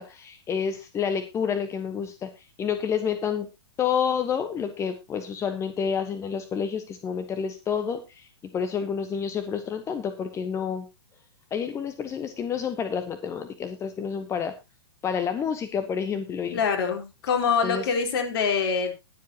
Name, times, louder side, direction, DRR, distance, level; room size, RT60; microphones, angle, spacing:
voice 1, 0.0-3.5 3.8-10.9 11.5-14.5 15.0-16.6 17.6-17.9, left 7 dB, 20° left, 9 dB, 1.2 m, -29 dB
voice 2, 16.5-18.9, left 6 dB, 55° left, 4 dB, 4.0 m, -25 dB
20.5 x 7.7 x 2.9 m, 0.25 s
hypercardioid pair, 115°, 14 cm